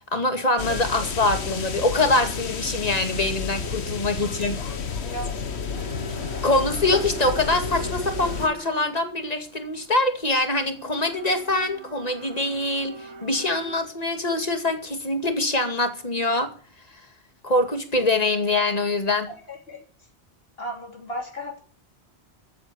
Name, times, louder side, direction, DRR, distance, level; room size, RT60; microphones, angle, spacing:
voice 1, 0.1-4.6 6.4-16.5 17.4-19.3, left 2 dB, 35° left, 6 dB, 2.3 m, -24 dB
sound 1, 0.6-8.5, left 5 dB, 75° left, 1.5 m, -31 dB
voice 2, 5.0-5.6 19.3-19.8 20.6-21.6, equal, 60° left, 1 dB, 3.1 m, -36 dB
sound 2, 5.8-13.8, right 1 dB, 80° right, 2.2 m, -41 dB
13.5 x 8.4 x 6.9 m, 0.41 s
omnidirectional pair, 1.1 m